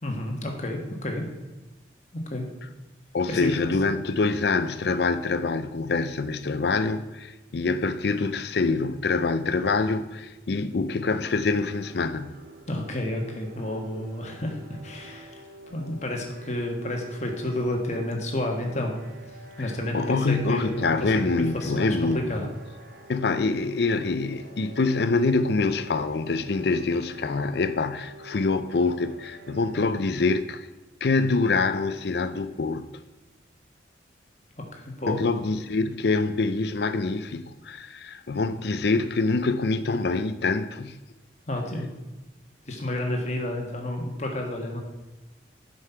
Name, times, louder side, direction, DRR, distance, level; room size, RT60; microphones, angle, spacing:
voice 1, 0.0-1.3 2.3-2.4 3.3-4.1 12.7-15.4 15.7-18.9 19.6-21.2 21.5-22.5 34.7-35.2 41.5-41.9 42.7-44.8, left 1 dB, 40° left, 1.4 m, -30 dB
voice 2, 3.1-12.4 19.6-22.5 23.1-30.7 31.0-32.9 35.1-41.0, left 3 dB, 60° left, 0.5 m, -25 dB
sound 1, 11.6-29.7, right 1 dB, 45° right, 1.1 m, -48 dB
7.9 x 5.5 x 5.7 m
head